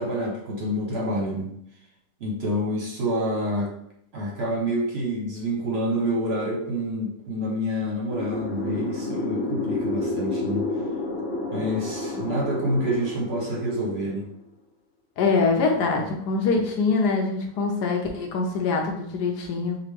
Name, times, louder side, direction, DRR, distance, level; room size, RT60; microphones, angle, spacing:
voice 1, 0.0-1.5 2.2-3.7 4.1-10.7 11.5-14.3, equal, 50° right, -1 dB, 0.8 m, -27 dB
sound 1, 8.1-14.3, left 2 dB, 55° left, 0.9 m, -30 dB
voice 2, 15.2-19.8, left 4 dB, 75° left, 1 dB, 1.2 m, -24 dB
5.0 x 2.4 x 3.2 m, 0.73 s
omnidirectional pair, 1.9 m